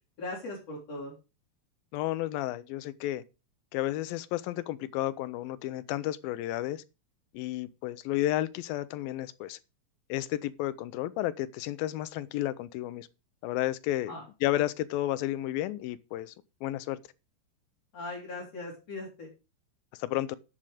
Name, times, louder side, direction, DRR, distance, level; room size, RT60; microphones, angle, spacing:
voice 1, 0.2-1.1 14.1-14.2 17.9-19.3, left 2 dB, 40° left, 4.3 m, -39 dB
voice 2, 1.9-3.2 3.7-6.8 7.3-9.6 10.1-13.1 13.4-14.2 14.4-16.3 16.6-17.0 20.0-20.4, left 14 dB, 80° left, 2.3 m, -32 dB
11.5 x 7.5 x 5.0 m
omnidirectional pair, 4.4 m